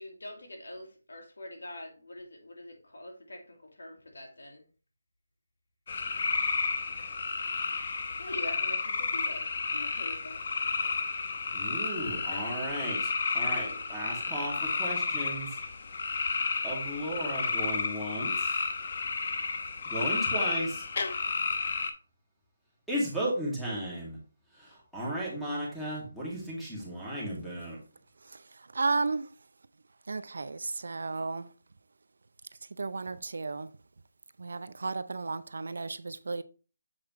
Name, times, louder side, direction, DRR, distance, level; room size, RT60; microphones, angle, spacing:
voice 1, 0.0-4.6 8.2-10.9, left 1 dB, 85° left, 2.1 m, -44 dB
sound 1, 5.9-21.9, left 4 dB, 45° left, 0.9 m, -32 dB
voice 2, 11.5-15.6 16.6-18.6 19.9-20.8 22.9-24.2 24.6-27.8, right 1 dB, ahead, 2.1 m, -35 dB
voice 3, 28.7-29.3 30.1-31.5 32.8-33.7 34.4-36.4, right 3 dB, 70° right, 0.5 m, -33 dB
7.5 x 4.7 x 3.1 m
figure-of-eight pair, 165°, 0 cm